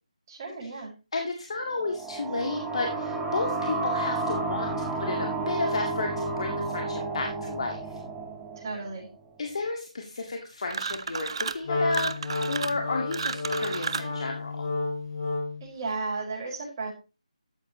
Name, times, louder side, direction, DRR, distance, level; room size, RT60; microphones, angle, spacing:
voice 1, 0.3-0.9 8.6-9.1 15.6-16.9, right 3 dB, 30° right, -3 dB, 5.5 m, -34 dB
voice 2, 1.1-8.0 9.4-14.7, left 3 dB, 55° left, 2 dB, 2.0 m, -32 dB
sound 1, 1.8-9.2, right 2 dB, 5° right, 1.4 m, -31 dB
sound 2, 10.7-11.6 11.9-14.1, right 5 dB, 45° right, 0.7 m, -32 dB
Wind instrument woodwind instrument, 11.6-15.7, left 3 dB, 30° left, 6.2 m, -31 dB
13.0 x 7.9 x 3.1 m, 0.30 s
figure-of-eight pair, 165°, 4 cm